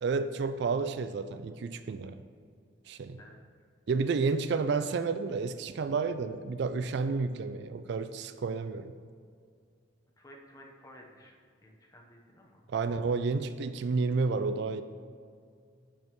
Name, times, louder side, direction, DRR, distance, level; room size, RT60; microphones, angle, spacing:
voice 1, 0.0-2.2 2.9-3.2 3.9-8.9 12.7-14.8, right 4 dB, 60° right, 11 dB, 0.3 m, -31 dB
voice 2, 10.2-11.3 11.6-12.6, equal, 20° left, 0 dB, 0.9 m, -53 dB
11.5 x 5.4 x 3.1 m, 2.2 s
head